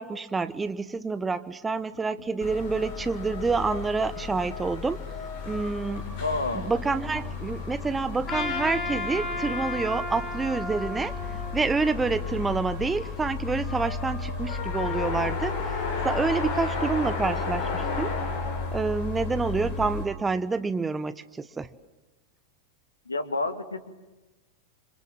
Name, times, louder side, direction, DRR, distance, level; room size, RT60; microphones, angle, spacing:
voice 1, 0.0-5.0 5.5-6.0 6.5-11.1 11.5-18.2 18.7-21.7, right 4 dB, 15° right, 13 dB, 1.1 m, -28 dB
sound 1, 1.8-4.7 5.9-9.7 11.2-14.2, right 1 dB, 70° right, 6.0 m, -46 dB
sound 2, 2.4-20.1, left 4 dB, 50° left, 5.9 m, -33 dB
voice 2, 6.2-6.7 23.1-24.0, left 2 dB, 80° left, 9 dB, 2.1 m, -29 dB
Trumpet, 8.3-12.6, left 3 dB, 30° left, 5.8 m, -34 dB
28.5 x 26.5 x 7.4 m, 1.1 s
figure-of-eight pair, 90°, 0 cm